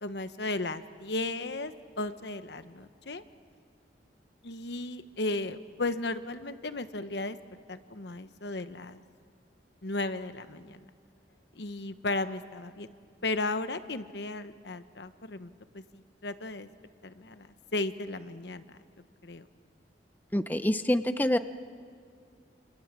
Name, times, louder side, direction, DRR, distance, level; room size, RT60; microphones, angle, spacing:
voice 1, 0.0-3.2 4.4-7.4 7.7-9.0 9.8-10.8 11.6-12.9 13.2-16.7 17.0-18.8 19.2-19.5, left 2 dB, 70° left, 11 dB, 1.1 m, -35 dB
voice 2, 20.3-21.4, left 1 dB, 10° left, 10 dB, 0.6 m, -26 dB
28.5 x 27.0 x 7.4 m, 2.2 s
head